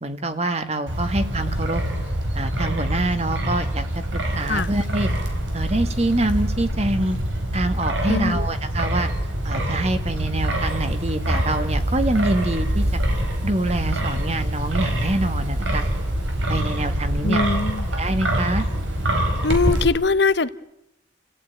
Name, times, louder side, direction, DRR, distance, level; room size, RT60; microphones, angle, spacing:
voice 1, 0.0-1.8 2.3-3.9 4.1-5.1 5.5-7.2 7.5-9.1 9.5-13.0 13.4-15.8 16.5-17.4 18.0-18.7, right 2 dB, 35° right, 9 dB, 1.7 m, -25 dB
Wind, 0.9-19.9, right 1 dB, 85° right, 4.5 m, -25 dB
voice 2, 8.1-8.5 17.2-17.9 19.4-20.5, left 3 dB, 65° left, 13 dB, 0.9 m, -21 dB
29.5 x 15.5 x 9.5 m, 0.87 s
head